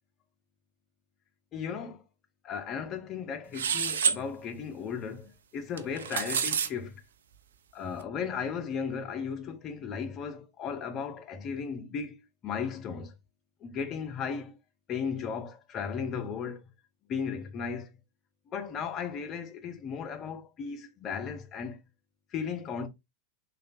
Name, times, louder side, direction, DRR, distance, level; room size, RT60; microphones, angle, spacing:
voice 1, 1.5-2.0 2.4-7.0 7.7-13.1 13.6-14.6 14.9-16.6 17.1-17.9 18.5-21.8 22.3-22.9, left 6 dB, 30° left, 0.6 m, -36 dB
sound 1, 3.5-4.2 5.8-6.7, right 7 dB, 65° right, 0.3 m, -28 dB
3.1 x 2.3 x 2.5 m
figure-of-eight pair, 90°, 0 cm